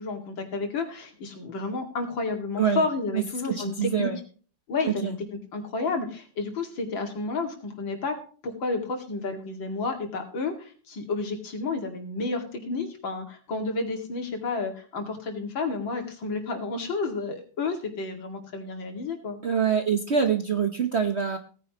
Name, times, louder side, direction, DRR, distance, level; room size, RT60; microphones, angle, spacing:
voice 1, 0.0-4.1 4.7-5.1 5.5-8.2 8.4-19.4, left 3 dB, 70° left, 3 dB, 3.0 m, -31 dB
voice 2, 3.5-4.2 4.8-5.1 19.4-21.4, right 7 dB, 45° right, 6 dB, 0.9 m, -25 dB
17.5 x 9.9 x 3.0 m, 0.40 s
omnidirectional pair, 2.2 m